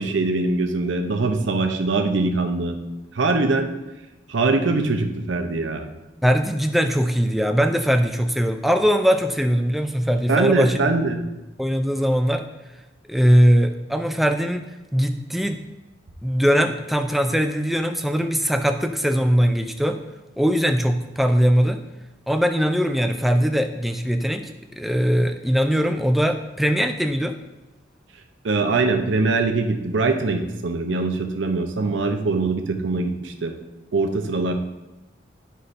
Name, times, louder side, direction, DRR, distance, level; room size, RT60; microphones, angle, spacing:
voice 1, 0.0-2.8 3.1-3.7 4.3-5.9 10.3-11.2 28.4-33.5 33.9-34.5, right 3 dB, 80° right, 5 dB, 0.7 m, -22 dB
voice 2, 6.2-10.9 11.6-12.4 13.1-14.6 14.9-15.6 16.2-20.0 20.4-21.8 22.3-27.4, equal, ahead, 6 dB, 0.3 m, -20 dB
9.8 x 5.5 x 2.6 m, 1.0 s
head